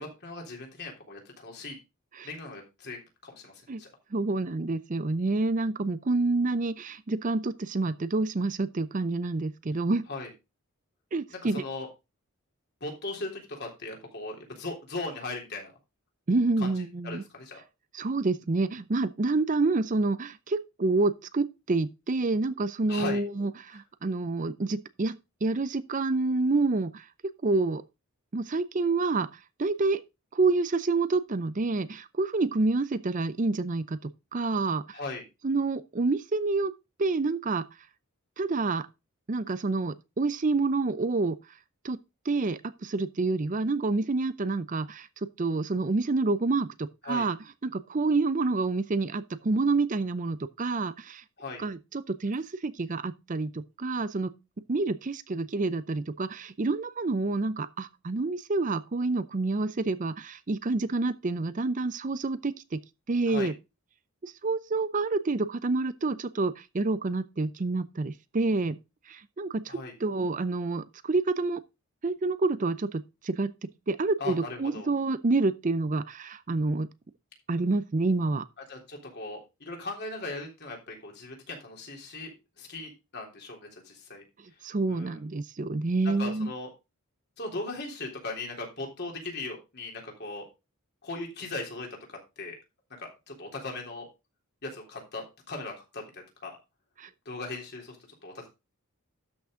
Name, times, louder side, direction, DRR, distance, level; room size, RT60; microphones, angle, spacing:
voice 1, 0.0-1.7 2.2-3.9 10.1-10.3 11.3-11.9 12.8-15.7 16.6-16.7 17.0-17.6 22.9-23.2 34.9-35.2 47.0-47.3 51.4-51.6 63.3-63.5 69.7-69.9 74.2-74.9 78.7-84.2 84.9-85.2 86.0-86.7 87.4-90.5 91.0-92.6 93.0-94.1 94.6-96.6 97.2-98.0 98.2-98.5, left 2 dB, 50° left, 3.5 m, -38 dB
voice 2, 4.1-10.0 11.1-11.6 16.3-17.2 17.9-27.8 28.3-30.0 30.3-35.0 35.4-36.7 37.0-37.6 38.4-38.9 39.3-41.4 41.8-42.0 42.3-47.4 47.6-51.2 51.6-54.3 54.7-62.8 63.1-63.5 64.2-68.8 69.1-71.6 72.0-76.9 77.5-78.5 84.6-86.5 97.0-97.1, right 3 dB, 35° right, 0.5 m, -28 dB
12.5 x 6.0 x 3.7 m
head